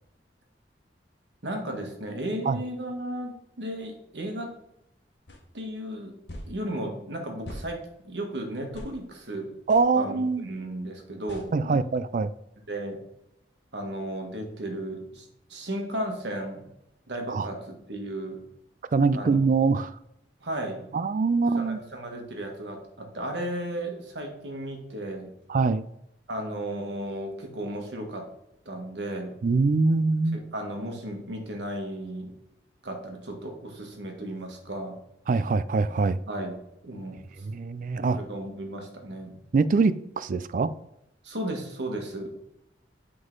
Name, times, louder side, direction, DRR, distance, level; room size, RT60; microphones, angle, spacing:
voice 1, 1.4-4.5 5.5-6.1 6.4-9.5 9.9-10.2 10.4-11.8 12.7-13.0 13.7-16.6 17.1-18.4 19.1-19.4 20.4-20.9 21.6-25.3 26.3-28.3 28.6-29.4 30.3-32.3 32.8-35.0 36.3-36.6 36.8-37.4 38.1-39.4 41.2-42.4, right 1 dB, 80° right, 1.5 m, -35 dB
sound 1, 5.3-5.4 6.3-6.5 7.4-7.7 8.7-8.9 9.7-9.9 11.3-11.5, equal, 80° left, 1.4 m, -40 dB
voice 2, 9.7-10.5 11.5-12.3 17.3-17.5 18.9-20.0 20.9-21.8 25.5-25.8 29.4-30.4 35.3-36.2 37.4-38.2 39.5-40.7, right 4 dB, 50° right, 0.3 m, -23 dB
7.9 x 3.8 x 3.9 m
head